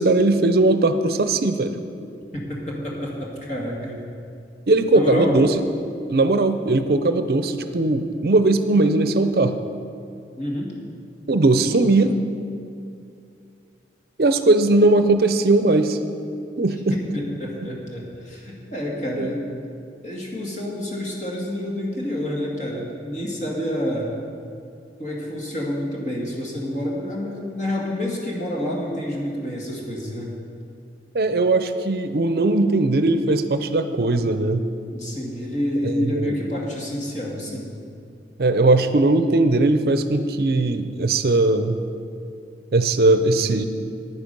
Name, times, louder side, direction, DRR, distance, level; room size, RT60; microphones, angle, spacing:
voice 1, 0.0-1.8 4.7-5.5 6.1-9.5 11.3-12.2 14.2-16.0 16.6-16.9 19.2-19.3 31.1-34.6 35.8-36.4 38.4-41.8 42.7-43.7, right 2 dB, 60° right, 9 dB, 0.5 m, -19 dB
voice 2, 2.3-4.0 4.9-5.3 10.4-10.7 16.9-19.4 20.0-24.1 25.0-30.3 34.9-37.7, left 1 dB, 40° left, -3 dB, 1.9 m, -28 dB
9.7 x 9.6 x 5.3 m, 2.4 s
head